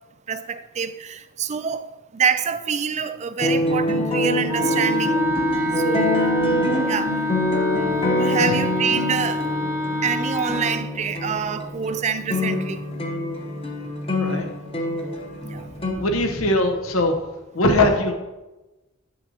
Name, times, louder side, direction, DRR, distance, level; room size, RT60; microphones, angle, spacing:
voice 1, 0.3-1.9 2.1-5.2 5.8-6.3 6.9-7.2 8.2-9.5 10.0-12.9 15.4-15.7, right 6 dB, 35° right, 0.4 m, -26 dB
sound 1, 3.4-15.9, left 1 dB, 25° left, 0.9 m, -25 dB
Wind instrument woodwind instrument, 4.5-10.8, left 1 dB, 15° right, 0.8 m, -26 dB
voice 2, 14.1-14.5 15.9-17.1 17.5-18.1, left 1 dB, 90° left, 0.9 m, -21 dB
9.2 x 5.7 x 2.8 m
head